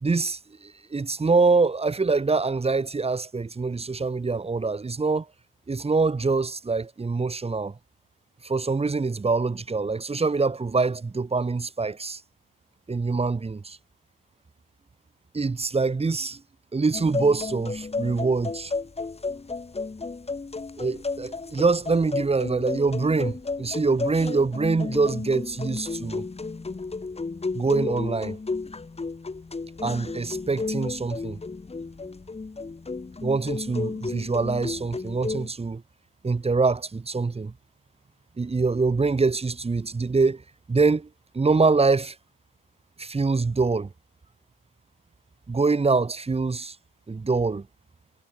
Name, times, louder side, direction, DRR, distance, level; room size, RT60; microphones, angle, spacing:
voice 1, 0.0-5.2 5.7-7.7 8.4-12.2 12.9-13.8 15.3-16.4 16.7-18.7 20.8-26.2 27.5-28.4 29.8-31.4 33.2-35.8 36.2-37.5 38.4-40.4 40.7-41.1 41.3-42.1 43.0-43.9 45.5-46.7 47.1-47.6, right 4 dB, 20° right, 2.7 m, -24 dB
sound 1, 16.9-35.5, left 3 dB, 20° left, 5.3 m, -33 dB
hypercardioid pair, 70°, 29 cm